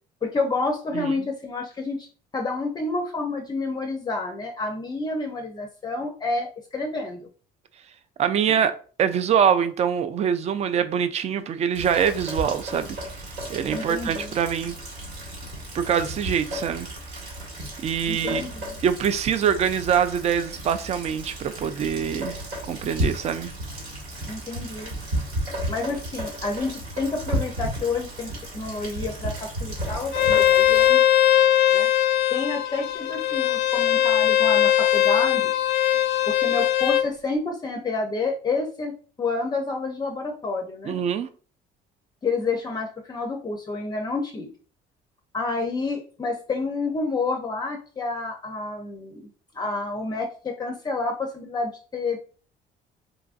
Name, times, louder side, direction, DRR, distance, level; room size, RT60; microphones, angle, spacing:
voice 1, 0.2-2.1 2.3-7.3 8.5-8.6 13.7-14.3 18.1-18.8 24.3-24.9 25.7-31.1 31.7-31.9 32.3-35.5 36.3-38.9 39.2-41.0 42.2-44.5 45.3-49.3 49.5-52.2, left 3 dB, 25° left, 0.5 m, -29 dB
voice 2, 8.2-8.7 9.0-13.0 13.5-14.7 15.7-16.9 17.8-18.4 18.8-22.4 22.7-23.5 40.8-41.3, right 8 dB, 40° right, 0.4 m, -24 dB
Rain, 11.7-30.9, right 1 dB, 85° right, 1.6 m, -33 dB
Bowed string instrument, 30.1-37.1, left 12 dB, 80° left, 0.4 m, -20 dB
3.8 x 2.4 x 2.4 m
cardioid pair, 110°, 17 cm